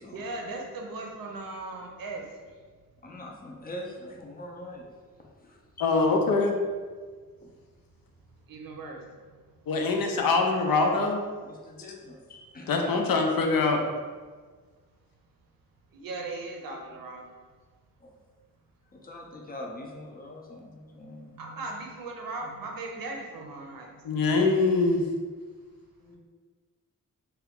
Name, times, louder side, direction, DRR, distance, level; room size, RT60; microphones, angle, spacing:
voice 1, 0.1-2.6 5.9-6.2 8.3-9.7 15.9-17.4 21.3-24.1, right 2 dB, 85° right, 1 dB, 0.6 m, -39 dB
voice 2, 3.0-4.9 5.2-5.9 7.4-7.5 11.4-13.6 18.0-18.1 18.9-21.3 26.0-26.2, left 1 dB, 30° left, 0 dB, 0.4 m, -43 dB
voice 3, 5.8-6.5 9.7-11.2 12.7-13.8 24.0-25.0, left 3 dB, 85° left, 3 dB, 0.5 m, -23 dB
2.9 x 2.2 x 3.5 m, 1.5 s
wide cardioid pair, 165°, 34 cm